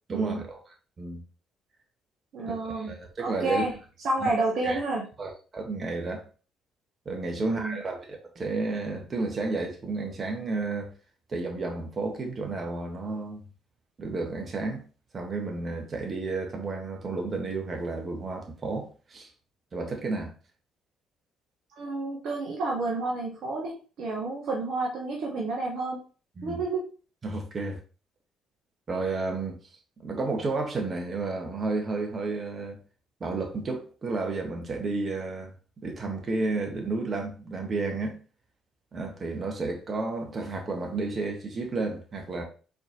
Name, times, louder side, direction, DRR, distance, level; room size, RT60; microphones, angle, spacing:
voice 1, 0.1-0.6 1.0-1.2 2.5-3.6 4.2-4.3 4.6-4.8 5.2-6.2 7.0-10.9 11.3-13.4 14.0-14.8 15.1-19.3 19.7-20.3 26.4-26.6 27.2-27.8 28.9-29.6 30.0-32.8 33.2-38.2 38.9-42.4, right 3 dB, 40° right, 1.3 m, -32 dB
voice 2, 2.3-2.9 3.2-3.7 4.0-5.0 7.4-7.8 21.7-23.7 24.0-26.0 26.4-26.9, right 2 dB, 65° right, 1.0 m, -30 dB
4.3 x 3.6 x 2.9 m
hypercardioid pair, 50°, 0 cm